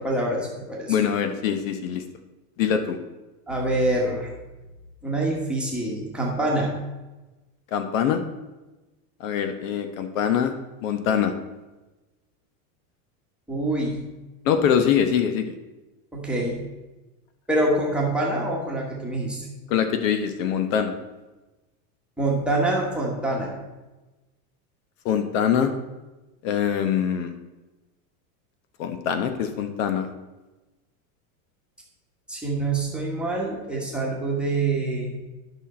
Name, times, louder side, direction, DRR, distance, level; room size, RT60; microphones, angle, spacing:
voice 1, 0.0-1.0 3.5-4.3 5.0-6.7 13.5-14.1 16.1-16.6 17.5-19.5 22.2-23.6 32.3-35.1, right 2 dB, ahead, -4 dB, 1.2 m, -25 dB
voice 2, 0.9-2.0 2.6-3.0 7.7-8.2 9.2-10.5 10.8-11.3 14.4-15.5 19.7-20.9 25.0-25.7 26.4-27.3 28.8-30.1, left 8 dB, 65° left, 8 dB, 1.0 m, -23 dB
11.0 x 5.9 x 4.3 m, 1.1 s
supercardioid pair, 170°, 43 cm